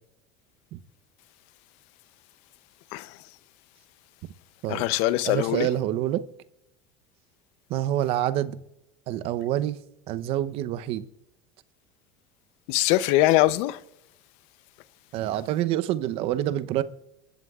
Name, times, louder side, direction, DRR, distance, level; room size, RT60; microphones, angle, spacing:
voice 1, 4.7-5.7 12.7-13.8, left 16 dB, 65° left, 0.7 m, -22 dB
voice 2, 5.2-6.2 7.7-8.6 9.1-9.8 10.1-11.1 15.1-16.8, right 12 dB, 60° right, 0.8 m, -27 dB
29.5 x 13.5 x 2.4 m
supercardioid pair, 100°, 11 cm